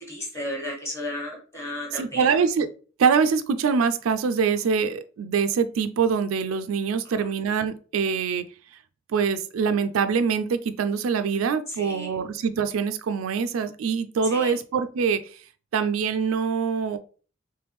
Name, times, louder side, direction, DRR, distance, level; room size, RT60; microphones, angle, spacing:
voice 1, 0.1-2.4 7.0-7.3 11.7-12.2 14.2-14.6, left 1 dB, 15° left, -1 dB, 1.4 m, -34 dB
voice 2, 1.9-2.7 3.0-8.4 9.1-15.2 15.7-17.0, right 6 dB, 80° right, 10 dB, 0.4 m, -24 dB
3.4 x 3.2 x 3.1 m, 0.39 s
head